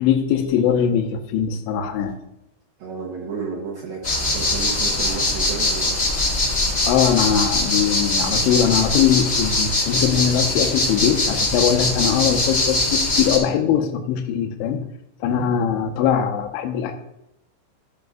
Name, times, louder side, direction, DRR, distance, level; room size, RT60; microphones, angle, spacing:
voice 1, 0.0-2.2 6.9-14.9 15.2-17.0, left 8 dB, 80° left, 5 dB, 3.2 m, -21 dB
voice 2, 2.8-6.1, right 5 dB, 70° right, -3 dB, 2.4 m, -32 dB
sound 1, 4.0-13.4, left 2 dB, 30° left, 1.2 m, -22 dB
14.5 x 7.3 x 2.6 m, 0.85 s
omnidirectional pair, 5.7 m